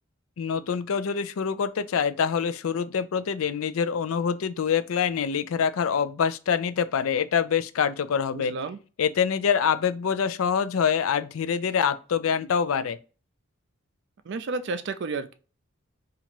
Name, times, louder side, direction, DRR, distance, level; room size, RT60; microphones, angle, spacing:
voice 1, 0.4-8.6 9.0-13.0, left 7 dB, 85° left, 0.4 m, -25 dB
voice 2, 8.3-8.8 14.3-15.3, right 3 dB, 55° right, 0.4 m, -31 dB
2.9 x 2.4 x 4.3 m
head